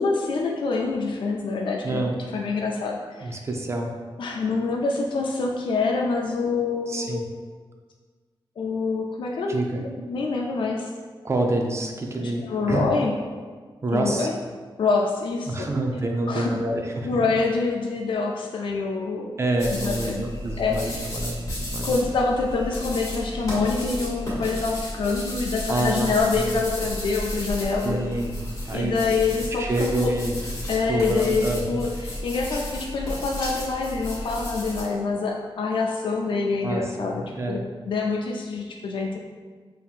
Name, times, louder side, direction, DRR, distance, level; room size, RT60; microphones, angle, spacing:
voice 1, 0.0-2.0 2.3-3.4 4.2-7.2 8.6-10.9 12.2-13.2 13.9-14.3 14.8-15.7 16.3-16.6 17.0-19.3 19.7-20.2 20.6-21.1 21.8-28.0 28.7-29.7 30.0-30.1 30.7-37.6 37.9-39.2, left 4 dB, 65° left, 0 dB, 0.4 m, -26 dB
voice 2, 3.2-3.9 6.9-7.2 9.5-9.8 11.2-12.9 13.8-14.3 15.5-17.1 19.4-22.0 25.7-26.6 27.8-28.4 28.7-29.0 29.5-30.4 30.9-31.8 36.6-37.6, right 2 dB, 30° right, 2 dB, 0.4 m, -27 dB
sound 1, 19.6-34.8, left 1 dB, 35° left, 1.5 m, -33 dB
5.4 x 2.8 x 2.4 m, 1.5 s
wide cardioid pair, 155°, 9 cm